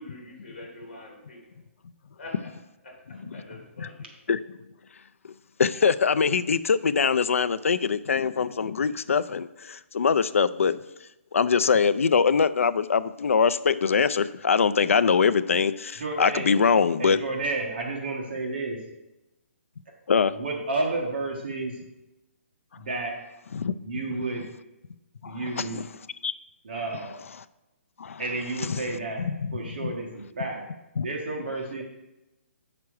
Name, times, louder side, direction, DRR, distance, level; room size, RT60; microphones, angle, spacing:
voice 1, 0.0-1.4 2.2-2.3 2.8-4.1, left 2 dB, 40° left, 0 dB, 3.0 m, -45 dB
voice 2, 5.6-10.8 11.3-17.2 20.1-20.3 23.5-23.7 25.2-25.9 26.2-26.3 28.0-28.2 28.6-28.8 29.2-29.9 31.0-31.1, left 6 dB, 75° left, 15 dB, 0.5 m, -23 dB
voice 3, 16.0-16.5 17.0-18.8 20.3-21.8 22.8-23.2 23.8-24.4 25.3-25.8 26.6-27.2 28.2-29.2 29.5-30.6 31.0-31.8, right 3 dB, 45° right, 0 dB, 1.4 m, -31 dB
8.7 x 6.0 x 4.7 m, 0.95 s
hypercardioid pair, 180°, 7 cm